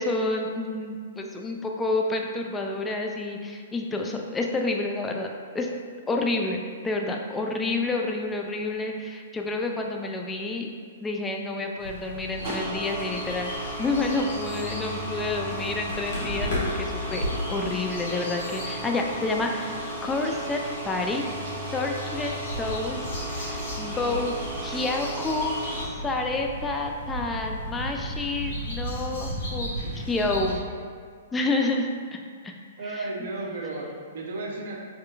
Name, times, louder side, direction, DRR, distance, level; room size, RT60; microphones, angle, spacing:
voice 1, 0.0-5.7 6.1-10.7 11.0-21.3 21.7-23.0 23.3-24.4 24.6-25.6 26.0-29.7 30.0-30.6 31.3-31.9 32.4-32.5 32.8-33.3, left 2 dB, 15° left, 2 dB, 0.3 m, -29 dB
sound 1, 11.8-30.6, equal, 60° left, 1.5 m, -36 dB
sound 2, 12.2-25.9, right 1 dB, 40° right, 1.5 m, -35 dB
sound 3, 14.2-27.9, left 3 dB, 5° right, 1.3 m, -42 dB
voice 2, 32.8-34.8, right 2 dB, 65° right, -1 dB, 0.7 m, -33 dB
3.7 x 3.1 x 2.4 m, 2.1 s
hypercardioid pair, 120°, 0 cm